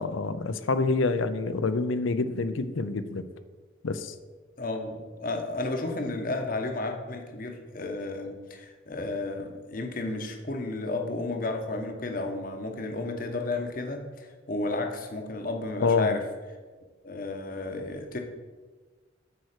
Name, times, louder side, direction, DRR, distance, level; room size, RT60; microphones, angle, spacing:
voice 1, 0.0-3.2 3.8-4.1 15.8-16.2, left 3 dB, 80° left, 12 dB, 0.6 m, -27 dB
voice 2, 4.6-16.2 17.0-18.2, left 2 dB, 45° left, 4 dB, 1.0 m, -32 dB
8.6 x 4.6 x 6.6 m, 1.4 s
head